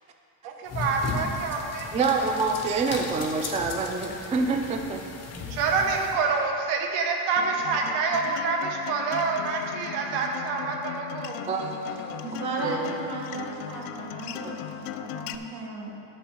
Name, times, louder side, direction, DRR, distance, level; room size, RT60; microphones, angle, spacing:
voice 1, 0.4-1.9 2.2-2.3 5.5-11.3, right 4 dB, 80° right, 2 dB, 1.2 m, -27 dB
sound 1, 0.7-6.2, left 3 dB, 30° left, 1.2 m, -36 dB
voice 2, 1.9-5.0 11.5-12.3 12.6-13.1 14.4-14.8, right 4 dB, 15° right, 4 dB, 0.3 m, -27 dB
Acoustic guitar, 7.4-15.3, left 10 dB, 80° left, 0.7 m, -38 dB
voice 3, 12.2-15.9, right 2 dB, 45° right, -1 dB, 1.9 m, -35 dB
10.5 x 4.2 x 7.3 m, 2.7 s
cardioid pair, 115°, 50 cm